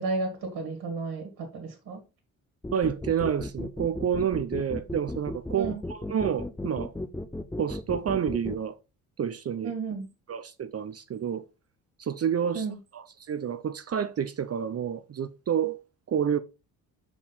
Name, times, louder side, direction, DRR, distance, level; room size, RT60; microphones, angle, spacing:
voice 1, 0.0-2.0 5.6-5.8 9.6-10.1 12.5-12.8, right 3 dB, 65° right, 1.8 m, -32 dB
sound 1, 2.6-8.6, left 1 dB, 5° left, 0.7 m, -35 dB
voice 2, 2.7-6.9 7.6-8.8 9.2-9.7 10.3-11.4 12.0-12.7 12.9-15.8 16.1-16.4, right 8 dB, 40° right, 0.6 m, -29 dB
5.4 x 4.6 x 4.0 m
supercardioid pair, 60°, 39 cm